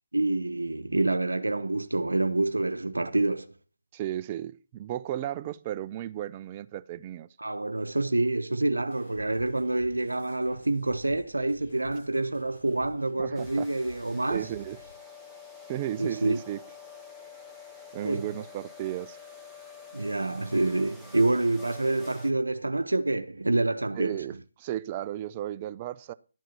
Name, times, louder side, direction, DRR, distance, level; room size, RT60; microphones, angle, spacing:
voice 1, 0.1-3.5 7.4-14.5 16.0-16.4 18.0-18.2 19.9-24.2, right 2 dB, 85° right, 0.9 m, -27 dB
voice 2, 3.9-7.3 13.2-13.7 14.3-14.8 15.7-16.6 17.9-19.2 23.9-26.1, right 12 dB, 25° right, 0.5 m, -34 dB
sound 1, 8.9-15.0, left 2 dB, 45° left, 6.4 m, -52 dB
sound 2, 13.3-22.3, left 5 dB, 5° left, 1.4 m, -48 dB
12.5 x 7.5 x 5.7 m
figure-of-eight pair, 150°, 0 cm